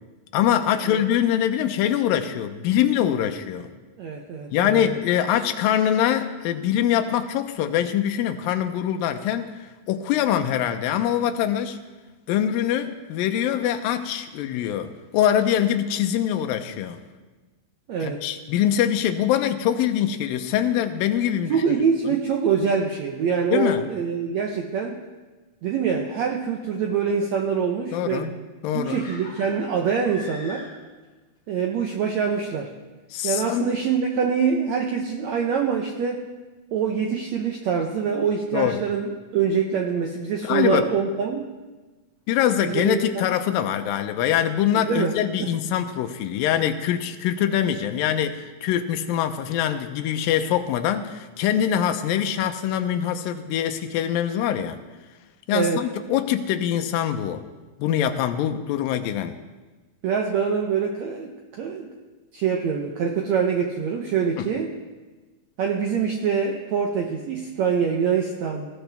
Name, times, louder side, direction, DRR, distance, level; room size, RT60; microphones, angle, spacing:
voice 1, 0.3-3.7 4.5-9.5 9.9-11.8 12.3-17.0 18.0-21.6 23.5-23.9 27.9-28.3 28.6-29.0 33.1-33.7 38.5-38.8 40.4-40.9 42.3-54.8 55.5-57.4 57.8-59.4 64.4-64.5, left 10 dB, 75° left, 7 dB, 2.4 m, -23 dB
voice 2, 4.0-5.0 17.9-18.2 21.5-25.0 25.6-28.4 28.7-30.7 31.5-32.7 33.2-36.2 36.7-41.5 42.6-43.3 44.9-45.1 45.4-45.5 55.5-55.8 60.0-61.9 62.3-64.7 65.6-68.7, right 6 dB, 80° right, 2 dB, 1.6 m, -25 dB
sound 1, 28.8-31.1 31.4-31.5, left 1 dB, 20° left, 5.3 m, -42 dB
18.5 x 14.0 x 3.5 m, 1.2 s
omnidirectional pair, 4.4 m